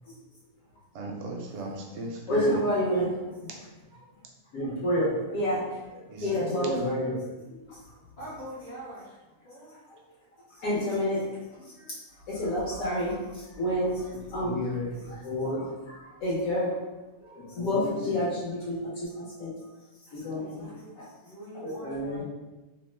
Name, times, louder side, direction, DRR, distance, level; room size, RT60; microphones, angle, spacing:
voice 1, 0.9-2.6 6.1-6.5, right 2 dB, 65° right, 0 dB, 0.7 m, -38 dB
voice 2, 2.3-3.5 4.5-7.8 9.7-10.0 10.5-12.0 12.3-16.8 17.2-19.5 20.1-21.1 21.5-22.2, equal, 70° left, -7 dB, 1.2 m, -30 dB
voice 3, 8.2-9.8 20.2-22.2, right 1 dB, 45° left, -10 dB, 0.6 m, -44 dB
2.9 x 2.1 x 3.1 m, 1.1 s
omnidirectional pair, 1.6 m